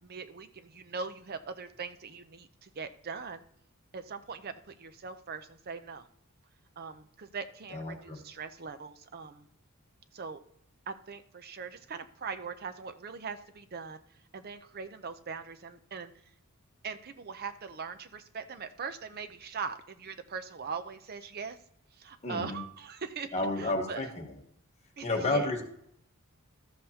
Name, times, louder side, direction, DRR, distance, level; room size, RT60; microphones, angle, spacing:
voice 1, 0.0-3.4 3.9-6.1 6.8-9.5 10.1-10.4 10.9-14.0 14.3-16.1 16.8-21.6 21.9-23.3 23.6-24.0 25.0-25.5, right 5 dB, 45° right, 9 dB, 0.5 m, -41 dB
voice 2, 7.7-8.2 22.2-22.6 23.3-24.3 25.0-25.6, left 2 dB, 30° left, 2 dB, 1.3 m, -31 dB
13.5 x 7.6 x 2.8 m, 0.70 s
head